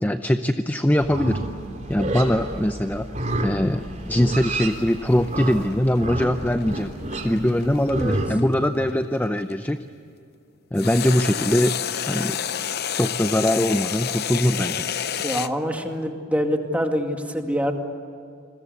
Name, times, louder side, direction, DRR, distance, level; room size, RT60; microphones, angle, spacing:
voice 1, 0.0-1.4 1.9-3.1 3.4-6.9 7.2-9.8 10.7-11.8 12.1-12.4 12.9-14.9, left 1 dB, 10° left, 8 dB, 0.7 m, -22 dB
Livestock farm animals working animals, 1.0-8.3, right 1 dB, 40° right, 3.4 m, -30 dB
sound 1, 4.5-9.7 10.8-15.5, left 9 dB, 55° left, 0.8 m, -29 dB
voice 2, 15.2-17.7, equal, 10° right, 3 dB, 2.3 m, -25 dB
28.5 x 22.0 x 8.3 m, 2.5 s
head